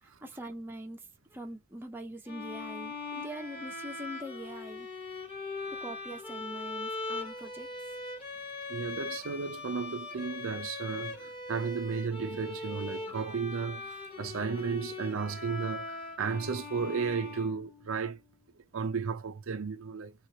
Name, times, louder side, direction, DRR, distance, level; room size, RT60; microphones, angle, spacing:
voice 1, 0.0-4.9 5.7-8.0, right 1 dB, 10° right, 0.6 m, -43 dB
sound 1, 2.3-17.9, left 3 dB, 25° left, 1.4 m, -40 dB
voice 2, 8.7-18.2 18.7-20.1, right 5 dB, 65° right, 0.5 m, -34 dB
4.5 x 2.5 x 3.9 m
head